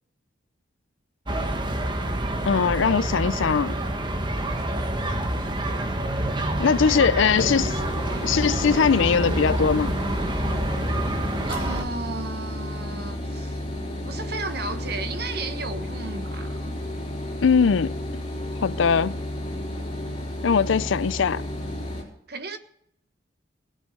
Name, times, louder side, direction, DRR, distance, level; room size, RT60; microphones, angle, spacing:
sound 1, 1.3-11.8, right 1 dB, 25° right, 1.3 m, -27 dB
voice 1, 2.5-3.7 6.6-7.8 8.2-9.9 17.4-18.0 18.6-19.2 20.4-21.4, left 6 dB, 70° left, 0.5 m, -21 dB
sound 2, 7.4-22.0, left 1 dB, 25° left, 4.3 m, -32 dB
voice 2, 11.4-13.6 14.1-16.8 22.3-22.6, right 3 dB, 50° right, 1.4 m, -34 dB
19.0 x 8.2 x 6.5 m
head